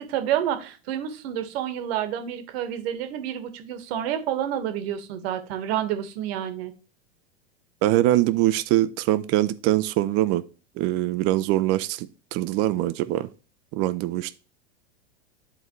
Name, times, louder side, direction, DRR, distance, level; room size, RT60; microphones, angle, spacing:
voice 1, 0.0-6.7, right 10 dB, 60° right, 1.5 m, -29 dB
voice 2, 7.8-10.4 10.8-13.3 13.7-14.3, right 15 dB, 45° right, 0.7 m, -23 dB
11.0 x 4.0 x 3.1 m
hypercardioid pair, 115°, 34 cm